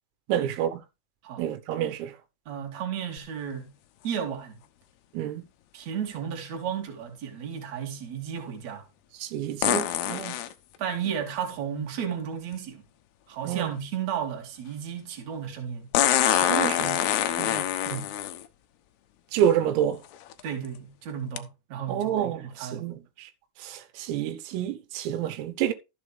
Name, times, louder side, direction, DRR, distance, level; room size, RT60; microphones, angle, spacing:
voice 1, 0.3-0.8 1.4-2.1 5.1-5.4 9.2-10.4 13.5-13.7 16.3-17.0 17.4-17.6 19.3-20.0 21.9-23.3 23.6-25.7, right 10 dB, 85° right, 3.9 m, -28 dB
voice 2, 2.5-3.7 4.0-4.6 5.7-8.8 10.8-12.8 13.3-15.9 17.8-18.1 20.4-22.8, right 8 dB, 40° right, 3.0 m, -33 dB
sound 1, 3.2-3.3 9.6-10.5 12.5-12.6 15.9-18.4 19.4-19.5 20.1-20.4 21.4-21.5, left 11 dB, 90° left, 2.2 m, -25 dB
13.5 x 7.4 x 3.4 m
omnidirectional pair, 6.0 m